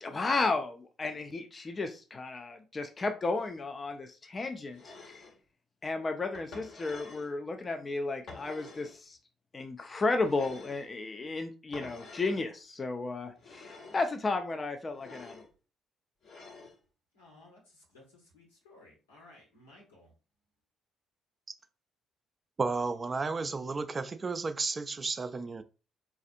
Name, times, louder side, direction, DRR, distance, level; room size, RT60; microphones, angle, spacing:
voice 1, 0.0-5.2 5.8-9.2 9.5-15.5, left 3 dB, 30° left, 0.5 m, -33 dB
sound 1, 4.7-5.4 6.3-7.3 8.3-9.0 10.2-10.9 11.7-12.4 13.4-14.1 14.9-15.5 16.2-16.8, left 3 dB, 55° left, 1.2 m, -48 dB
voice 2, 17.1-20.1, left 2 dB, 80° left, 1.4 m, -57 dB
voice 3, 22.6-25.6, right 4 dB, 35° right, 0.3 m, -33 dB
4.2 x 2.4 x 2.5 m
figure-of-eight pair, 45°, 0 cm